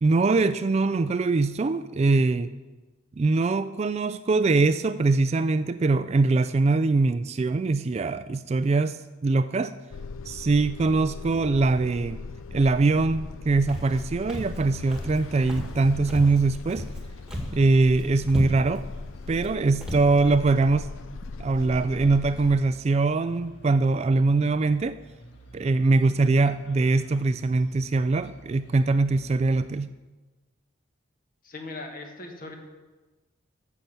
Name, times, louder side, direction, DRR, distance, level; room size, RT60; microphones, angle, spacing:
voice 1, 0.0-2.5 3.2-9.7 10.3-12.2 12.5-16.9 17.5-18.9 19.3-20.9 21.4-25.0 25.5-29.9, right 3 dB, 30° right, 13 dB, 0.3 m, -22 dB
sound 1, 9.9-22.6, left 3 dB, 85° left, 0.4 m, -39 dB
Walk footsteps, 13.7-14.0 14.3-14.6 14.9-15.2 15.5-15.8 16.1-17.0 17.3-17.6 17.9-18.0 18.3-18.8 19.3-19.5 19.8-20.1, equal, 5° right, 1.8 m, -34 dB
sound 2, 14.3-29.7, equal, 65° left, 1.7 m, -50 dB
voice 2, 31.4-32.5, left 2 dB, 45° left, 3 dB, 1.7 m, -39 dB
14.5 x 5.8 x 6.8 m, 1.2 s
head